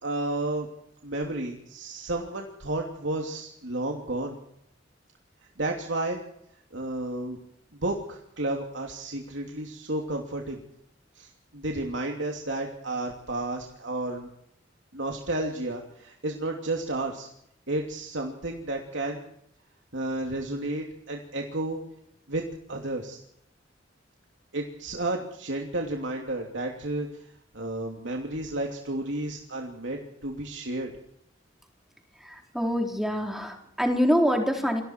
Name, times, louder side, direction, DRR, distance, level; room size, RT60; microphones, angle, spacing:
voice 1, 0.0-0.7 1.0-4.4 5.6-6.2 6.7-7.4 7.7-10.6 11.1-14.3 14.9-17.3 17.7-19.3 19.9-21.8 22.3-22.4 22.7-23.2 24.5-27.2 27.5-30.9, right 2 dB, 75° right, 1 dB, 2.9 m, -32 dB
voice 2, 32.2-34.8, equal, ahead, 2 dB, 3.9 m, -25 dB
29.0 x 24.0 x 4.6 m, 0.75 s
head